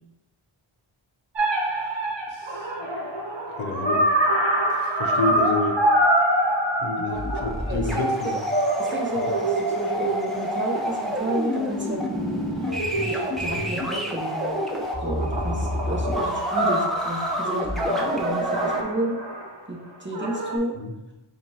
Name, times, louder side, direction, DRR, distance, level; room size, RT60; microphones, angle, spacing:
sound 1, 1.4-8.1 8.5-11.8 12.7-14.0 14.4-19.5 20.1-20.6, right 1 dB, 60° right, 0.9 m, -26 dB
voice 1, 2.3-2.7 3.6-4.1 4.7-5.8 6.8-8.5 9.2-9.3 16.1-16.3 20.8-20.9, left 3 dB, 70° left, 3 dB, 0.6 m, -29 dB
sound 2, 7.1-18.8, equal, ahead, 0.6 m, -28 dB
voice 2, 7.7-8.3 8.8-12.4 13.0-14.5 15.0-19.2 19.7-20.8, right 1 dB, 25° right, 0 dB, 0.8 m, -31 dB
5.0 x 2.4 x 2.8 m, 0.96 s
wide cardioid pair, 45°, 49 cm